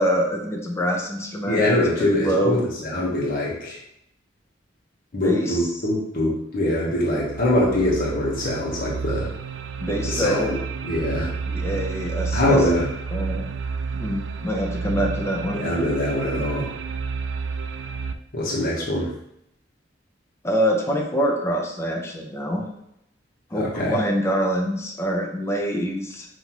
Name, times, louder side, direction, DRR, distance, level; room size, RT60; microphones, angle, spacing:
voice 1, 0.0-2.6 5.2-5.6 9.8-10.5 10.9-11.0 11.5-12.6 13.1-13.5 13.9-15.7 20.4-22.7 23.5-26.3, equal, 15° left, 1 dB, 0.6 m, -25 dB
voice 2, 1.5-3.8 5.1-9.3 10.0-11.3 12.3-12.9 15.5-16.7 18.3-19.1 23.6-24.0, left 1 dB, 50° left, -5 dB, 1.2 m, -23 dB
sound 1, 6.2-6.3 6.8-18.1, right 5 dB, 70° right, 0.3 m, -30 dB
5.6 x 2.8 x 3.0 m, 0.77 s
head